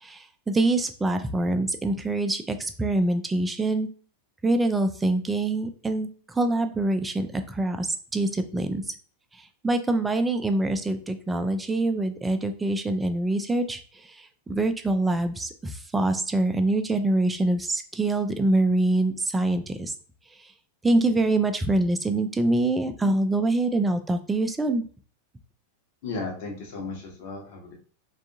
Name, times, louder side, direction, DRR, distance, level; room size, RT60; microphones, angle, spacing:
voice 1, 0.0-3.9 4.4-8.8 9.4-19.9 20.8-24.8, right 2 dB, 10° right, 7 dB, 0.3 m, -25 dB
voice 2, 26.0-27.7, left 3 dB, 45° left, 0 dB, 1.0 m, -35 dB
3.4 x 2.4 x 2.6 m, 0.42 s
figure-of-eight pair, 90°, 0 cm